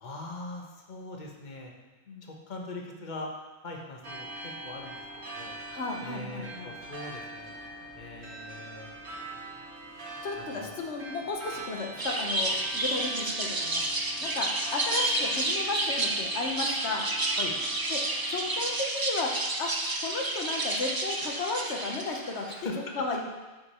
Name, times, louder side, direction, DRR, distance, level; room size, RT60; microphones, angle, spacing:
voice 1, 0.0-1.7 2.2-3.3 3.6-5.6 6.0-7.5 7.9-8.9 10.4-10.7 17.4-17.6 22.5-22.9, left 2 dB, 45° left, 0 dB, 1.3 m, -41 dB
sound 1, 4.0-18.8, right 1 dB, 75° right, 1.6 m, -43 dB
voice 2, 5.7-6.7 10.2-13.8 14.2-17.1 17.9-18.0 18.3-19.7 20.0-22.5 23.0-23.2, left 3 dB, 85° left, 1 dB, 1.4 m, -34 dB
sound 2, 12.0-22.6, right 2 dB, 25° right, 0.6 m, -30 dB
13.5 x 5.0 x 4.4 m, 1.2 s
omnidirectional pair, 1.1 m